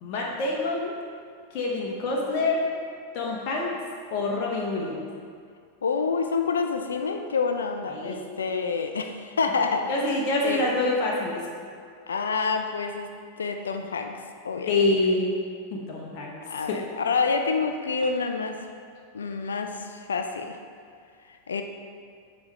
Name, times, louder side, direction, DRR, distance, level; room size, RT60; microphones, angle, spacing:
voice 1, 0.0-1.0 1.5-2.7 3.1-3.7 4.1-5.0 7.9-8.2 9.9-11.5 14.7-15.3 15.7-16.4 16.7-16.8, left 2 dB, 45° left, -2 dB, 0.9 m, -26 dB
voice 2, 5.8-10.1 10.4-10.7 12.1-14.2 14.4-15.0 16.5-18.6 19.1-20.6 21.5-21.6, left 4 dB, 70° left, 5 dB, 0.4 m, -28 dB
7.1 x 3.2 x 5.2 m, 2.2 s
figure-of-eight pair, 90°, 0 cm